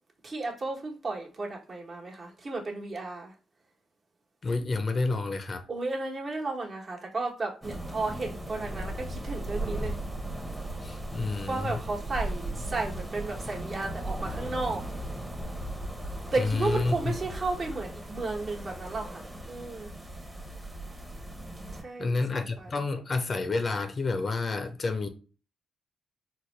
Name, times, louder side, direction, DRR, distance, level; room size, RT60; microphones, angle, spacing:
voice 1, 0.2-3.3 5.7-9.9 11.5-14.8 16.3-19.9 21.8-22.7, right 3 dB, 45° right, 1.1 m, -33 dB
voice 2, 4.4-5.6 10.8-11.8 16.4-17.1 22.0-25.1, left 3 dB, 45° left, 0.6 m, -29 dB
sound 1, 7.6-21.8, right 1 dB, 10° right, 0.9 m, -37 dB
4.0 x 2.1 x 3.2 m
cardioid pair, 70°, 0 cm